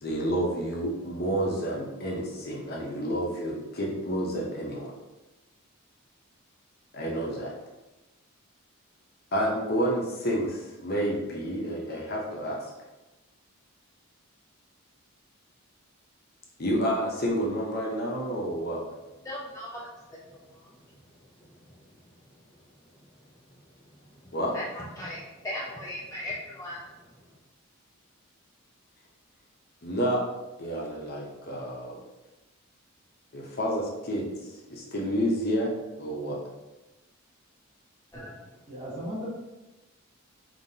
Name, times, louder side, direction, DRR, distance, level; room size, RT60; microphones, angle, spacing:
voice 1, 0.0-4.9 6.9-7.5 9.3-12.6 16.6-18.8 24.3-24.6 29.8-30.2 30.6-32.0 33.3-35.7 36.0-36.4, equal, 45° left, -2 dB, 0.8 m, -29 dB
voice 2, 19.2-19.8 20.1-20.2 24.5-26.8 38.1-38.3, left 1 dB, 15° left, -6 dB, 0.4 m, -37 dB
voice 3, 38.7-39.3, equal, 35° right, -7 dB, 1.5 m, -36 dB
5.4 x 2.8 x 2.7 m, 1.1 s
head